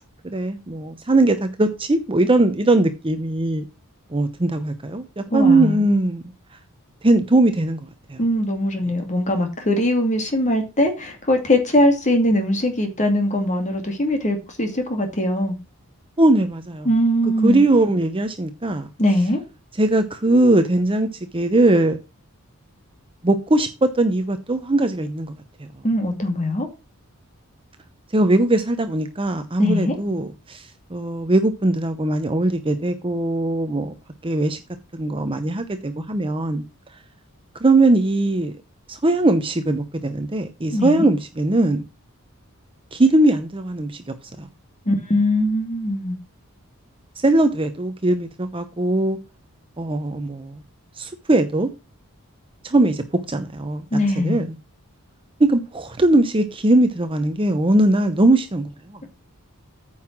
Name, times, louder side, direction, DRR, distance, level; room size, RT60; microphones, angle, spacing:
voice 1, 0.2-3.7 4.1-6.2 7.0-8.2 16.2-16.9 17.4-18.9 19.8-22.0 23.2-25.4 28.1-33.9 34.2-34.6 34.9-36.6 37.6-38.5 38.9-41.8 42.9-44.5 47.2-49.2 49.8-50.5 51.0-51.7 52.6-54.5 55.4-59.0, right 2 dB, 25° right, 0.8 m, -20 dB
voice 2, 5.3-5.8 8.2-15.6 16.8-17.6 19.0-19.4 25.8-26.7 29.6-30.0 40.7-41.1 44.9-46.2 53.9-54.5, left 1 dB, 35° left, 2.4 m, -21 dB
9.5 x 5.6 x 6.0 m
head